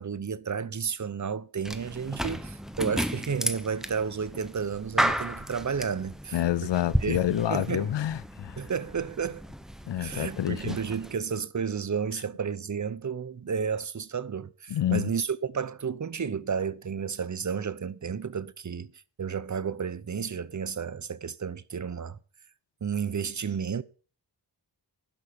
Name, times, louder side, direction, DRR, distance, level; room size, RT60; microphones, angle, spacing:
voice 1, 0.0-6.7 7.0-7.9 8.6-9.4 10.0-18.9 19.2-22.2 22.8-23.8, right 6 dB, 40° right, 0.7 m, -32 dB
sound 1, 1.6-11.2, equal, ahead, 1.0 m, -34 dB
voice 2, 6.3-8.6 9.9-10.8 14.7-15.1, left 12 dB, 75° left, 0.6 m, -28 dB
11.0 x 5.7 x 6.8 m
cardioid pair, 45°, 44 cm